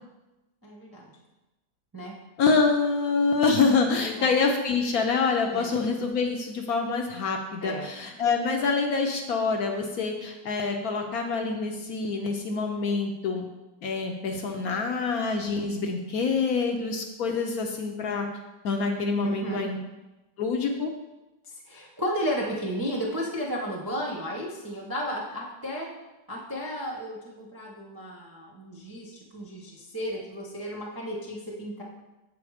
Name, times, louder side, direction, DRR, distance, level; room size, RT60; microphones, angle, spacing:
voice 1, 0.6-1.0 1.9-2.1 4.0-4.3 5.5-5.7 7.6-7.9 19.2-19.7 21.4-25.9 26.3-31.8, equal, 25° right, -4 dB, 0.4 m, -33 dB
voice 2, 2.4-13.5 13.8-18.3 18.6-19.8 20.4-20.9, left 4 dB, 65° left, 3 dB, 1.0 m, -26 dB
7.3 x 4.2 x 4.9 m, 1.0 s
omnidirectional pair, 1.9 m